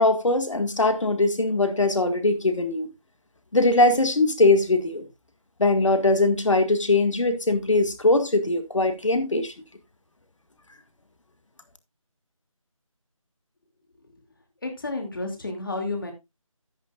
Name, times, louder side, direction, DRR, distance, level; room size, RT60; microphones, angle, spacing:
voice 1, 0.0-2.9 3.5-5.1 5.6-9.5, left 2 dB, 60° left, 1.9 m, -21 dB
voice 2, 14.6-16.1, left 2 dB, 40° left, 2.5 m, -31 dB
11.5 x 10.0 x 2.4 m
figure-of-eight pair, 175°, 18 cm